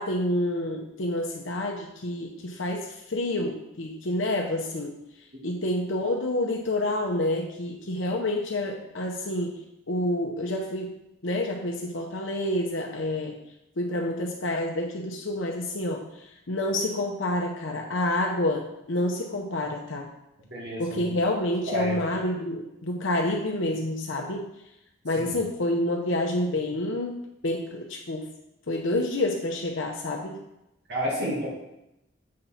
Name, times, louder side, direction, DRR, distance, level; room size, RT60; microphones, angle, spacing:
voice 1, 0.0-5.0 5.4-9.6 9.9-10.9 11.2-13.4 13.8-20.1 20.8-24.5 25.0-27.2 27.4-28.3 28.7-30.4, left 1 dB, 65° left, 1 dB, 0.8 m, -28 dB
voice 2, 20.5-21.1 21.7-22.0 25.2-25.3 30.9-31.5, equal, 55° right, -5 dB, 2.1 m, -30 dB
7.5 x 4.1 x 5.7 m, 0.88 s
head